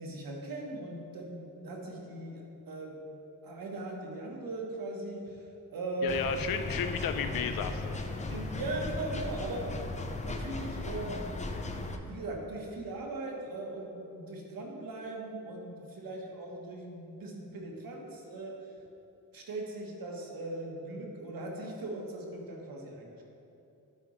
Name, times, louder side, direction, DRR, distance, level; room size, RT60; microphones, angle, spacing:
voice 1, 0.0-3.0 3.4-5.4 5.7-6.3 8.3-9.7 10.2-11.3 11.9-18.6 19.3-23.2, right 2 dB, 85° right, 0 dB, 1.2 m, -39 dB
voice 2, 6.0-8.0, left 7 dB, 85° left, 9 dB, 0.5 m, -33 dB
sound 1, 6.1-12.0, left 2 dB, 20° left, 0.5 m, -37 dB
11.0 x 4.8 x 3.1 m, 2.8 s
wide cardioid pair, 105°, 34 cm